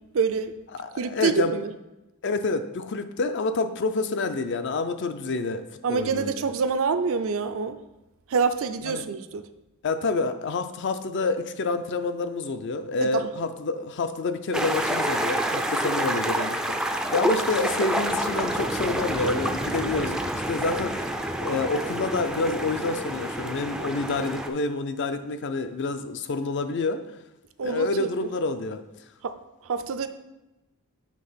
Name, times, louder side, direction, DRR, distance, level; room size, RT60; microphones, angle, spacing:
voice 1, 0.1-0.5 1.0-1.7 5.8-7.8 8.3-9.4 13.0-13.1 27.6-27.9 29.2-29.3 29.7-30.1, right 5 dB, 65° right, 10 dB, 0.4 m, -26 dB
voice 2, 0.7-1.6 2.2-6.4 8.8-9.1 9.8-27.0 27.6-28.8, left 3 dB, 55° left, 9 dB, 0.5 m, -28 dB
sound 1, 14.5-24.5, right 1 dB, 5° right, 0.4 m, -28 dB
7.4 x 3.4 x 5.6 m, 1.0 s
head